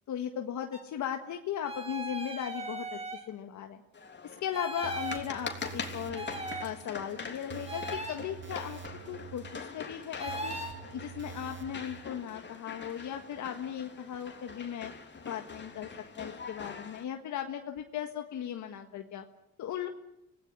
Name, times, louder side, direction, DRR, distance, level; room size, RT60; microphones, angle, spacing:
voice 1, 0.1-3.0 3.3-3.8 4.2-6.3 6.6-8.8 9.1-9.5 9.7-10.5 10.9-14.9 15.2-15.9 16.2-19.3 19.6-19.9, left 9 dB, 70° left, 5 dB, 1.7 m, -37 dB
sound 1, 0.7-0.8 1.6-3.2 4.5-5.3 6.1-6.7 7.7-8.2 10.2-10.8, right 1 dB, 20° right, 7.0 m, -38 dB
sound 2, 3.9-17.0, left 5 dB, 35° left, 3.3 m, -43 dB
sound 3, 4.8-12.0, right 8 dB, 40° right, 1.7 m, -47 dB
25.5 x 18.5 x 10.0 m, 0.84 s
cardioid pair, 90°, 30 cm